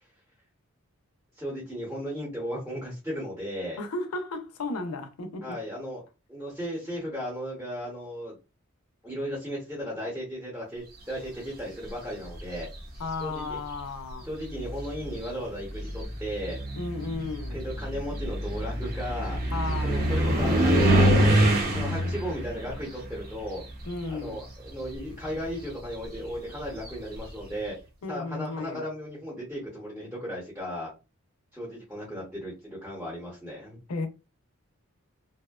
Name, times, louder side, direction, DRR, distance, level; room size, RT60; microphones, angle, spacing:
voice 1, 1.4-3.8 5.4-6.0 6.3-8.3 9.0-12.7 13.2-13.4 14.2-16.6 17.5-19.4 19.8-20.9 21.2-21.4 21.7-23.6 24.1-27.8 28.1-30.9 31.5-33.8, equal, 10° right, 0.8 m, -35 dB
voice 2, 3.8-5.6 13.0-14.3 16.7-17.6 19.5-20.6 23.9-24.4 28.0-28.8 33.9-34.1, left 3 dB, 85° left, 0.5 m, -34 dB
sound 1, 12.2-12.8 13.8-13.9 14.4-24.4 24.6-27.3, right 1 dB, 40° right, 0.7 m, -26 dB
2.6 x 2.1 x 2.3 m
head